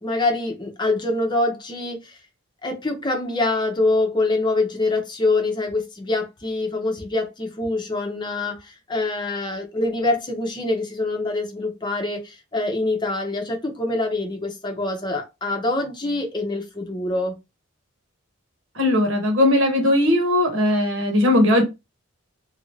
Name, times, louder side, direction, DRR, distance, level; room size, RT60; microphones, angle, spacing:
voice 1, 0.0-2.2 2.6-17.3, left 2 dB, 20° left, 2 dB, 0.8 m, -25 dB
voice 2, 18.7-21.6, left 1 dB, 70° right, 2 dB, 1.3 m, -18 dB
2.9 x 2.6 x 3.2 m, 0.24 s
head